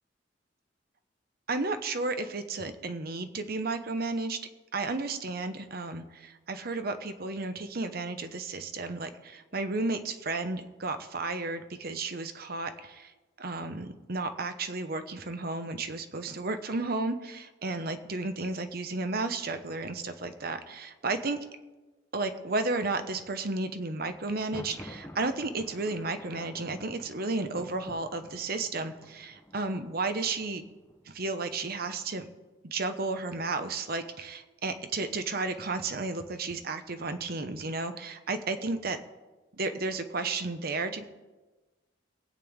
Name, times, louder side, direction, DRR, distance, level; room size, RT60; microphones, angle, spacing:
voice 1, 1.5-4.4 4.7-13.1 13.4-21.4 22.1-30.6 31.1-32.3 32.6-39.0 39.6-41.1, right 3 dB, 55° right, 9 dB, 1.0 m, -33 dB
Thunder, 24.3-32.0, equal, 15° left, 1.0 m, -50 dB
23.5 x 9.0 x 3.6 m, 1.2 s
head